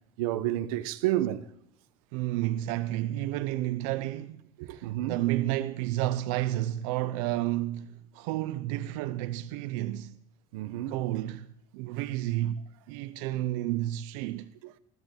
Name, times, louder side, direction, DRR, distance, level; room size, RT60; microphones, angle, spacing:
voice 1, 0.2-1.5 4.6-5.2 10.5-11.0 14.6-14.7, right 14 dB, 90° right, 1.3 m, -30 dB
voice 2, 2.1-10.2 10.9-11.5 11.7-14.5, right 15 dB, 65° right, 0.8 m, -31 dB
21.5 x 14.0 x 8.9 m
cardioid pair, 180°, 17 cm